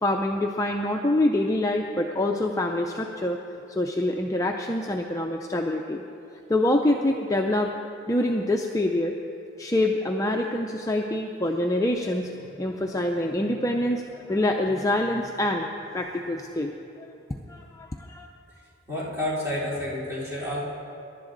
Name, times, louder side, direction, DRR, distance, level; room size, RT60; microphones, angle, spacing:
voice 1, 0.0-3.4 3.8-6.0 6.5-7.7 8.1-9.1 9.6-15.7 15.9-17.1 17.5-18.3, left 1 dB, 15° left, 2 dB, 0.5 m, -25 dB
voice 2, 18.9-20.6, left 1 dB, 15° right, -8 dB, 3.5 m, -29 dB
22.5 x 11.5 x 3.9 m, 2.7 s
head